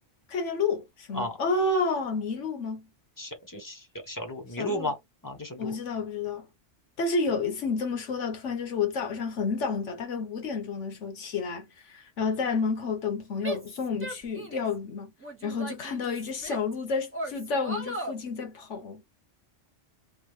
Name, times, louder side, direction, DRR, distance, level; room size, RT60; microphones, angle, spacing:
voice 1, 0.3-2.9 4.6-4.9 5.6-6.5 7.0-15.1 15.4-19.0, left 4 dB, 70° left, 1.4 m, -30 dB
voice 2, 3.2-5.0 5.2-5.7, left 1 dB, 20° left, 0.8 m, -34 dB
Female speech woman speaking / Yell, 13.4-14.7 15.2-16.7 17.1-18.2, right 1 dB, 10° right, 0.8 m, -37 dB
3.1 x 2.4 x 3.2 m
omnidirectional pair, 1.3 m